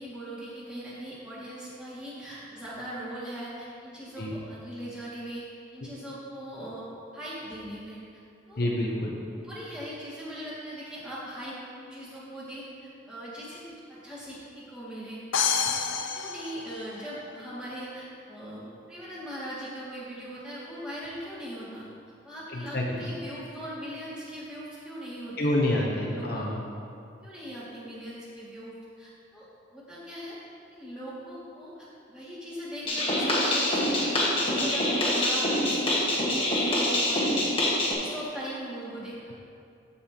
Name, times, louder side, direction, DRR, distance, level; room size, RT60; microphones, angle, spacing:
voice 1, 0.0-5.4 5.7-6.8 7.1-8.0 8.5-8.7 9.3-13.6 13.9-21.8 22.2-25.5 26.0-26.5 27.2-29.5 29.7-30.4 30.7-36.0 36.3-37.3 37.9-39.3, equal, 5° right, -10 dB, 2.0 m, -40 dB
voice 2, 8.6-9.1 22.5-23.0 25.4-26.6, left 1 dB, 50° left, -3 dB, 0.8 m, -27 dB
sound 1, 15.3-17.3, left 7 dB, 85° left, 0.5 m, -28 dB
sound 2, 32.9-37.9, left 1 dB, 30° left, 1.2 m, -25 dB
14.5 x 5.5 x 2.9 m, 2.4 s
head